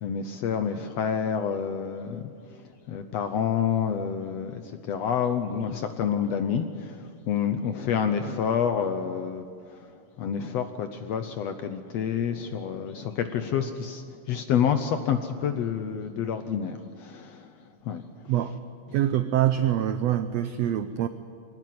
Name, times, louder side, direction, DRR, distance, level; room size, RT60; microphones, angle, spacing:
voice 1, 0.0-2.6 2.9-9.5 9.7-9.9 10.2-17.5 17.8-18.0, left 7 dB, 70° left, 8 dB, 1.6 m, -28 dB
voice 2, 18.9-21.1, right 11 dB, 90° right, 10 dB, 1.4 m, -25 dB
23.5 x 18.0 x 9.5 m, 2.3 s
omnidirectional pair, 3.9 m